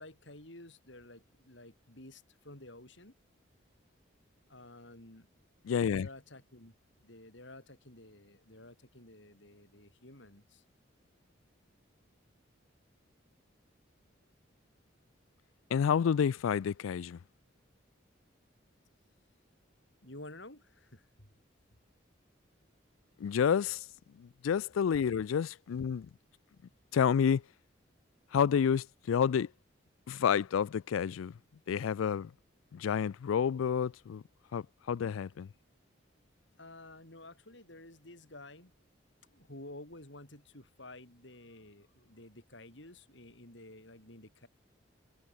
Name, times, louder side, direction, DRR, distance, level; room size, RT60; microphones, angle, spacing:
voice 1, 0.0-3.1 4.5-5.3 5.9-6.7 7.0-10.6 20.0-21.3 36.6-38.7 39.3-44.5, left 1 dB, 65° left, 6.1 m, -52 dB
voice 2, 5.6-6.1 15.7-17.2 23.2-23.8 24.2-26.1 26.9-27.4 28.3-29.5 30.1-31.3 31.7-32.3 32.7-34.2 34.5-35.5, left 7 dB, 90° left, 0.4 m, -29 dB
head